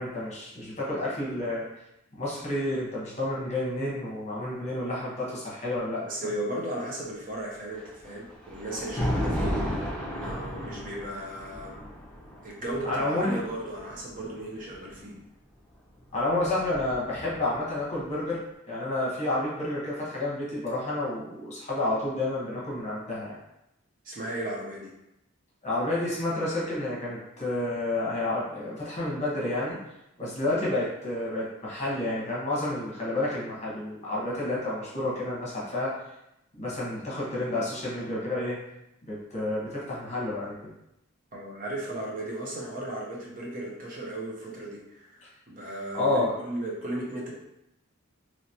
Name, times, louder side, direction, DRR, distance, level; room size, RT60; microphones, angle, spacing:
voice 1, 0.0-1.7 2.2-6.0 12.8-13.4 16.1-18.4 18.6-23.4 25.6-29.8 30.2-35.9 36.6-38.6 39.1-40.5 45.9-46.3, left 2 dB, 35° left, -6 dB, 1.1 m, -30 dB
voice 2, 6.1-11.8 12.4-15.1 24.0-24.9 41.3-45.2 45.5-47.3, right 1 dB, 40° right, -3 dB, 0.7 m, -36 dB
Thunder, 7.7-14.9 16.0-17.7, equal, 5° left, 0.9 m, -34 dB
3.0 x 3.0 x 2.8 m, 0.85 s
head